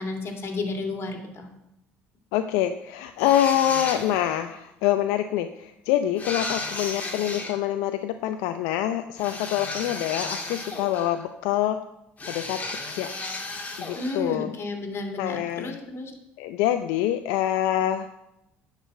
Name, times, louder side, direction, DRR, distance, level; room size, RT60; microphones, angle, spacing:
voice 1, 0.0-1.5 13.9-16.1, left 2 dB, 45° left, 3 dB, 2.5 m, -32 dB
voice 2, 2.3-11.8 12.3-12.6 12.9-13.1 13.8-14.5 15.2-15.8 16.4-18.1, left 12 dB, 75° left, 8 dB, 0.5 m, -25 dB
sound 1, 3.2-4.4 6.2-7.6 9.2-11.2 12.2-14.2, left 2 dB, 25° left, 2.1 m, -34 dB
10.0 x 4.9 x 7.7 m, 0.85 s
supercardioid pair, 75°, 6 cm